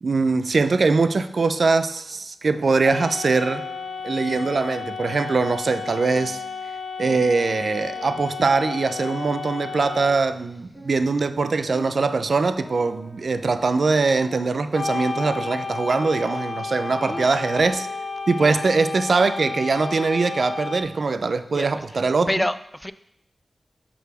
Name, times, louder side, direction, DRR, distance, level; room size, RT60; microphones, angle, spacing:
voice 1, 0.0-3.6 4.0-6.4 7.0-17.9 18.3-22.3, right 4 dB, 60° right, 11 dB, 0.4 m, -22 dB
sound 1, 1.3-3.0 3.4-5.0 5.3-7.5 7.9-10.4 10.7-14.9 15.1-19.1, right 1 dB, 10° right, 2.2 m, -46 dB
sound 2, 2.8-10.1 14.7-20.8, left 4 dB, 85° left, 1.2 m, -32 dB
voice 2, 17.0-17.4 18.4-18.6 21.5-21.8 22.3-22.9, left 1 dB, 10° left, 13 dB, 0.3 m, -28 dB
5.5 x 4.1 x 6.0 m, 0.78 s
wide cardioid pair, 70°, 0 cm